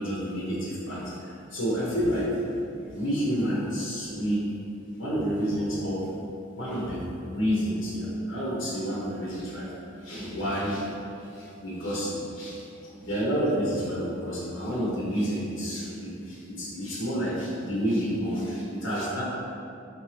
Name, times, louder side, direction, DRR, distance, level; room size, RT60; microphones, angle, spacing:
voice 1, 0.0-2.4 2.9-4.5 5.0-6.1 6.5-9.7 10.0-10.9 11.3-12.7 13.0-19.2, equal, 70° left, -7 dB, 1.0 m, -29 dB
4.4 x 3.3 x 3.3 m, 2.7 s
head